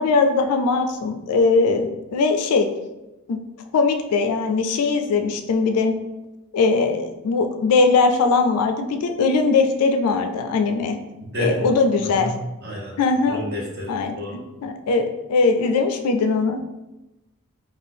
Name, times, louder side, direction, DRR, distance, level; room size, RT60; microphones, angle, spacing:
voice 1, 0.0-2.7 3.3-3.4 3.7-5.9 6.5-11.0 11.4-12.3 13.0-13.4 13.9-14.2 14.6-16.6, left 4 dB, 80° left, 6 dB, 0.3 m, -20 dB
voice 2, 11.2-11.7 12.1-12.3 12.6-12.9 13.3-14.3, equal, 45° right, -2 dB, 0.8 m, -30 dB
2.6 x 2.3 x 3.4 m, 1.0 s
head